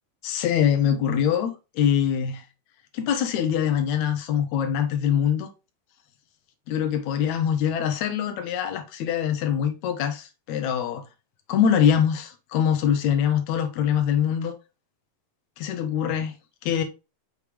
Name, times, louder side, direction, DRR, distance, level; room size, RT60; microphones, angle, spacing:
voice 1, 0.2-2.4 2.9-5.5 6.7-11.0 11.5-14.5 15.6-16.3 16.6-16.8, left 8 dB, 85° left, 1.6 m, -23 dB
6.4 x 5.1 x 3.4 m
omnidirectional pair, 4.6 m